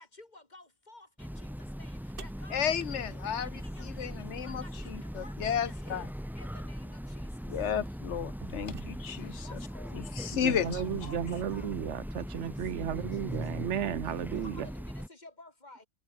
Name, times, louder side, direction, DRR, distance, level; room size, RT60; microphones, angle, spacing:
voice 1, 0.0-1.5 1.8-3.0 3.4-4.1 4.4-6.1 6.3-7.3 9.4-10.0 10.8-11.3 11.5-11.7 12.7-12.9 14.4-15.9, left 2 dB, 40° left, 3.1 m, -53 dB
Train, 1.2-15.1, equal, ahead, 2.7 m, -40 dB
sound 1, 2.2-4.3 6.2-6.3 7.2-7.4 7.9-9.3, right 6 dB, 55° right, 1.4 m, -50 dB
voice 2, 2.5-3.5 4.0-6.1 7.5-9.5 10.0-11.1, left 8 dB, 80° left, 1.2 m, -33 dB
voice 3, 10.3-14.7, right 9 dB, 90° right, 1.2 m, -34 dB
omnidirectional pair, 1.2 m